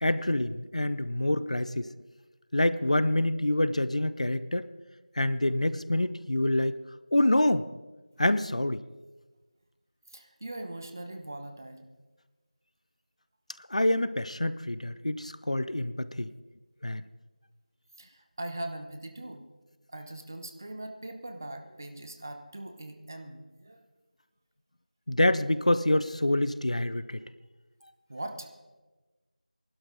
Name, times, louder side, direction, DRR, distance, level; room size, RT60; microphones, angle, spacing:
voice 1, 0.0-1.9 2.5-4.7 5.2-6.7 7.1-7.6 8.2-8.8 13.7-16.3 16.8-17.1 25.1-27.2, left 1 dB, 50° left, 15 dB, 0.5 m, -26 dB
voice 2, 10.1-11.9 18.0-19.4 19.9-23.8 28.1-28.5, right 1 dB, 25° right, 6 dB, 0.7 m, -41 dB
19.5 x 12.0 x 4.0 m, 1.2 s
figure-of-eight pair, 175°, 4 cm